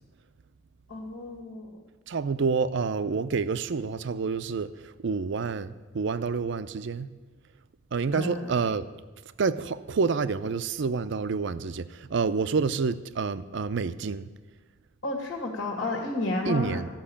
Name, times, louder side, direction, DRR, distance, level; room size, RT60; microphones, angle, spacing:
voice 1, 0.9-1.8 8.1-8.5 15.0-16.8, left 2 dB, 85° left, 2.0 m, -31 dB
voice 2, 2.1-7.1 7.9-8.9 9.4-14.3 16.5-16.9, right 5 dB, 65° right, 0.5 m, -28 dB
13.5 x 6.0 x 8.6 m
head